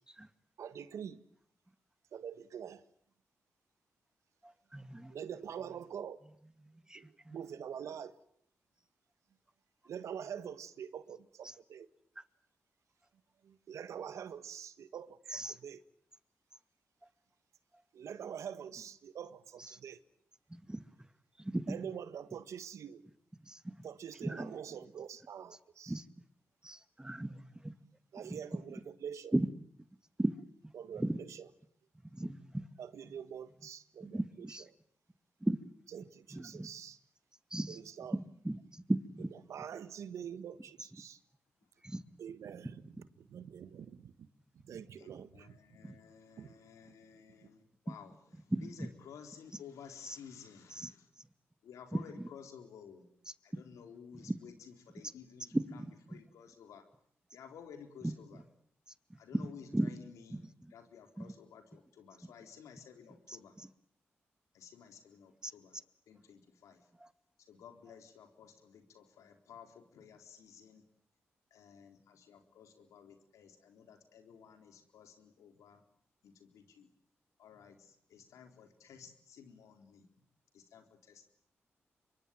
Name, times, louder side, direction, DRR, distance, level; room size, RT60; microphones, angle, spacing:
voice 1, 0.6-1.2 2.1-2.8 5.1-6.2 6.9-8.1 9.9-11.9 13.4-15.8 17.9-20.0 21.7-23.0 23.8-25.9 28.1-29.3 30.7-31.5 32.8-34.2 35.9-37.0 37.7-38.2 39.5-41.2 42.2-42.8 43.2-44.1 44.6-45.5 46.4-46.5, right 8 dB, 75° right, 1.6 m, -45 dB
voice 2, 4.4-5.1 5.6-5.9 6.9-7.5 11.4-11.5 15.3-15.6 19.6-19.8 20.5-20.8 21.4-22.0 23.4-23.9 24.2-24.6 25.9-26.0 26.6-27.7 28.2-28.8 29.3-29.5 30.2-30.4 30.9-31.2 32.0-32.7 33.1-33.2 34.0-34.7 35.4-35.6 36.3-36.7 37.5-37.8 38.1-39.3 40.8-40.9 41.8-42.0 45.8-46.0 48.5-48.9 50.1-50.2 50.7-50.9 51.9-52.3 54.1-54.4 55.5-55.9 58.0-58.2 59.3-60.0 60.3-60.4 61.2-61.3 63.3-63.7 65.4-65.5 67.0-67.1, right 1 dB, 15° right, 2.1 m, -37 dB
voice 3, 45.0-51.1 51.6-53.1 53.4-56.9 57.3-58.4 59.2-60.4 60.7-63.6 64.5-65.8 66.1-66.9 67.5-70.8 71.5-75.8 76.2-76.9 77.4-80.1 80.5-81.3, left 7 dB, 80° left, 3.9 m, -54 dB
26.0 x 24.0 x 9.2 m
supercardioid pair, 40°, 5 cm